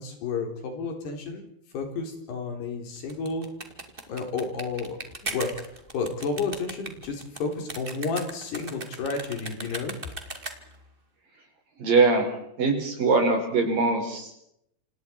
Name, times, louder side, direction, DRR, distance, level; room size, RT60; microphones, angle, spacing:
voice 1, 0.0-1.4 1.7-3.5 4.1-5.0 5.2-5.5 5.9-9.9, left 4 dB, 80° left, 3 dB, 6.0 m, -31 dB
sound 1, 3.0-10.8, right 2 dB, 20° right, 1.6 m, -38 dB
voice 2, 11.8-12.3 12.6-14.3, right 3 dB, 55° right, 2 dB, 7.3 m, -22 dB
28.0 x 27.5 x 4.7 m, 0.76 s
omnidirectional pair, 4.7 m